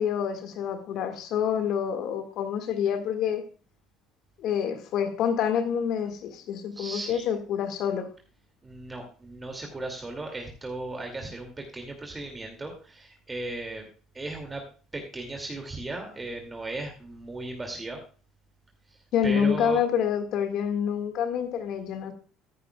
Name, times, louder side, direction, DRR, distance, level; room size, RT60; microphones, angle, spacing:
voice 1, 0.0-3.4 4.4-8.1 19.1-22.1, left 8 dB, 65° left, 1.9 m, -27 dB
voice 2, 6.7-7.2 8.6-13.9 14.1-14.6 14.9-18.0 19.2-19.8, right 2 dB, 20° right, 2.5 m, -36 dB
14.0 x 10.0 x 2.4 m
hypercardioid pair, 75°, 0 cm